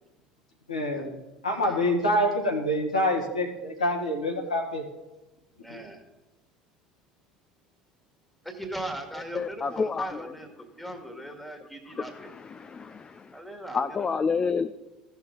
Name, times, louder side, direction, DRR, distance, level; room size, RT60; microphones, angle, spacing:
voice 1, 0.7-1.1 1.4-4.8 5.7-5.8, left 1 dB, 85° left, 1 dB, 1.6 m, -26 dB
voice 2, 5.6-6.0 8.4-12.3 13.3-14.2, right 1 dB, 5° left, 5 dB, 1.8 m, -39 dB
voice 3, 9.3-10.3 11.9-13.3 13.7-14.7, left 5 dB, 25° left, 10 dB, 0.4 m, -29 dB
15.5 x 5.9 x 3.8 m, 1.0 s
figure-of-eight pair, 65°, 4 cm